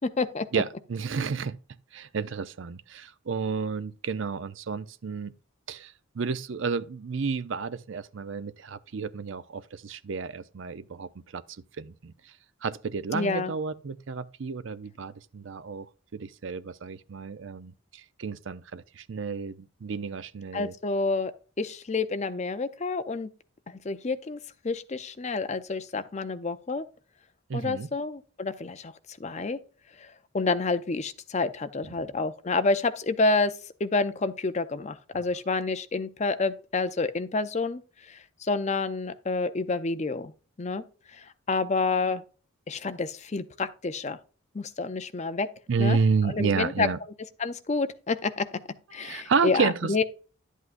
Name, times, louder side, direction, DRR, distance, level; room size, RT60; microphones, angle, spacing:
voice 1, 0.0-0.5 13.1-13.5 20.5-23.3 23.7-24.4 24.6-26.8 27.5-29.6 30.0-40.3 40.6-40.8 41.1-42.2 42.7-44.2 44.5-45.5 45.8-46.0 46.3-46.9 47.4-48.5 48.9-50.0, left 3 dB, 30° left, 0.5 m, -29 dB
voice 2, 0.5-1.6 1.9-5.3 5.7-11.4 11.8-12.1 12.6-15.9 16.1-20.7 27.5-27.9 45.7-47.0 49.0-50.0, right 5 dB, 60° right, 0.5 m, -31 dB
11.0 x 8.2 x 2.5 m
head